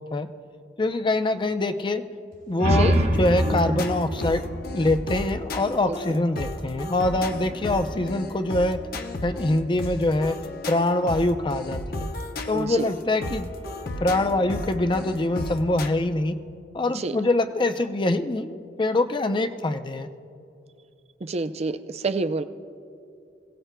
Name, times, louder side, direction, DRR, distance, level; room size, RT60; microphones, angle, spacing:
voice 1, 0.8-2.0 2.5-4.4 4.7-8.8 9.2-10.4 10.7-12.1 12.5-13.5 13.9-16.3 16.7-20.1, left 2 dB, 25° left, 8 dB, 0.5 m, -24 dB
sound 1, 2.3-5.8, equal, 80° right, 2.7 m, -25 dB
voice 2, 2.6-3.0 5.9-6.0 12.5-12.9 16.9-17.2 21.2-22.4, right 3 dB, 35° right, 10 dB, 0.5 m, -28 dB
sound 2, 2.9-15.9, left 1 dB, 55° left, 0.8 m, -34 dB
26.5 x 17.0 x 2.2 m, 2.6 s
head